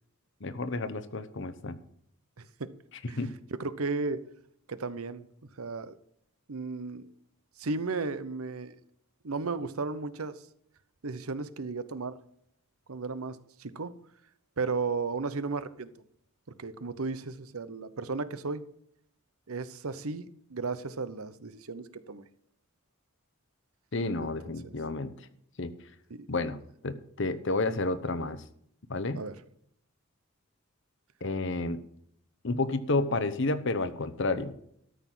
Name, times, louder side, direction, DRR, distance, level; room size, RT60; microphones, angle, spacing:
voice 1, 0.4-1.8 3.2-3.3 23.9-25.1 25.6-25.7 26.3-28.4 28.9-29.2 31.2-31.8 32.4-34.5, left 2 dB, 60° left, 0.9 m, -30 dB
voice 2, 2.4-2.7 3.1-3.2 3.6-4.2 4.7-5.3 5.6-5.9 6.5-7.1 7.6-8.7 9.2-10.4 11.0-12.2 12.9-13.9 14.6-15.9 16.6-18.6 19.5-22.3 24.2-24.3 24.6-24.7 26.1-26.3 29.1-29.3, right 4 dB, 85° right, 0.9 m, -34 dB
13.0 x 6.1 x 7.5 m
head